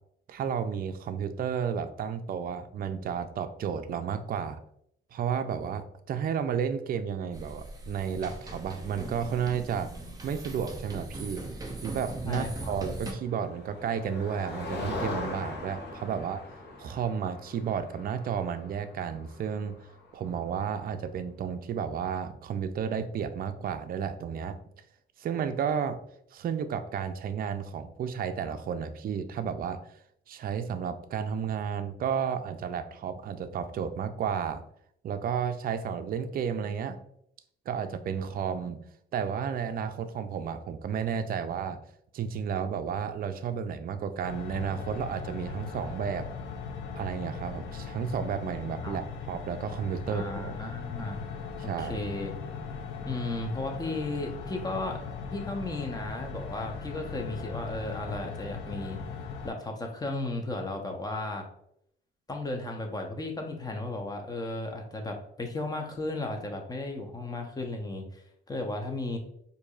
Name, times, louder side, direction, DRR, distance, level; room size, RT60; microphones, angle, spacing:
voice 1, 0.3-4.6 5.1-9.9 10.2-11.4 11.8-16.4 16.8-19.8 20.1-24.6 25.2-26.0 26.3-29.9 30.3-34.6 35.0-37.0 37.7-38.8 39.1-41.8 42.1-46.3 46.9-50.6 51.6-52.0, right 7 dB, 45° right, 9 dB, 0.4 m, -32 dB
sound 1, 7.3-13.1, right 2 dB, 20° right, 0.7 m, -40 dB
voice 2, 12.2-12.8 48.8-49.0 50.1-51.2 51.6-52.3 53.0-55.0 55.3-59.0 59.4-61.5 62.3-68.2 68.5-69.2, left 2 dB, 20° left, 3 dB, 0.8 m, -34 dB
Motor vehicle (road), 12.9-20.6, left 2 dB, 60° left, 1.1 m, -41 dB
sound 2, 44.2-59.5, left 5 dB, 85° left, 0.6 m, -39 dB
4.5 x 2.7 x 2.4 m, 0.72 s
cardioid pair, 90°, 20 cm